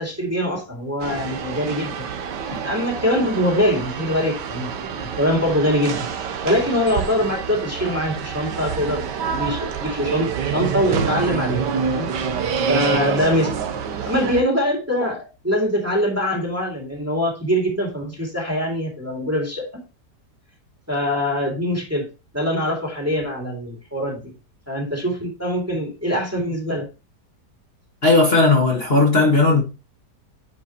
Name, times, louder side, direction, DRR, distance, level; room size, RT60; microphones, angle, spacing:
voice 1, 0.0-2.1 2.6-4.7 5.0-6.1 6.4-12.1 12.7-13.5 14.0-19.7 20.9-24.3 24.7-26.9, equal, 10° right, 2.2 m, -23 dB
sound 1, 1.0-14.4, right 6 dB, 85° right, 1.6 m, -27 dB
voice 2, 28.0-29.6, left 3 dB, 35° left, 1.9 m, -16 dB
9.6 x 4.7 x 2.9 m
omnidirectional pair, 1.8 m